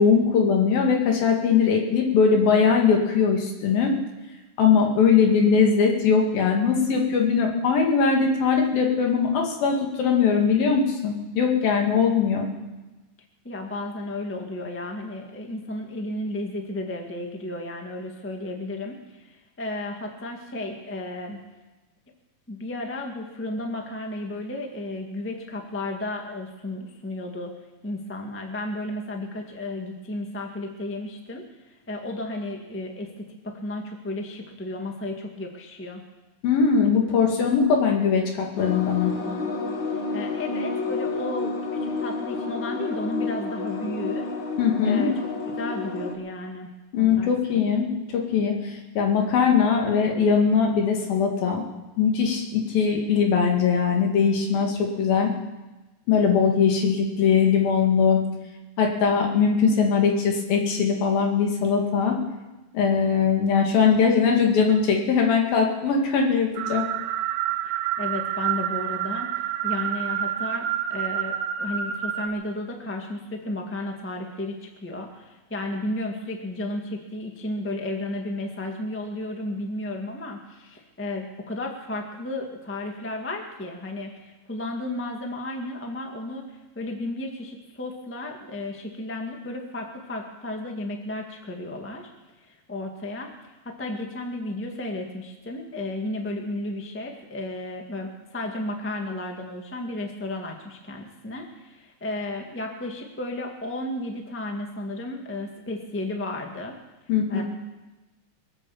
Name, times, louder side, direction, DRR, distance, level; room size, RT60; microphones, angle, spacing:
voice 1, 0.0-3.9 4.6-12.5 36.4-39.1 44.6-45.1 46.9-51.6 52.0-55.3 56.1-58.2 58.8-62.2 62.7-66.8 107.1-107.4, left 6 dB, 85° left, 1 dB, 4.0 m, -21 dB
voice 2, 13.4-21.4 22.5-27.5 27.8-36.0 39.9-44.3 44.8-45.2 45.6-47.3 67.6-92.1 92.4-106.8 107.3-107.4, left 1 dB, 15° left, 2 dB, 0.4 m, -33 dB
sound 1, 38.6-46.1, left 4 dB, 55° left, 1.3 m, -30 dB
sound 2, 66.6-72.3, right 10 dB, 85° right, 2.4 m, -28 dB
23.0 x 8.5 x 7.3 m, 1.1 s
omnidirectional pair, 4.0 m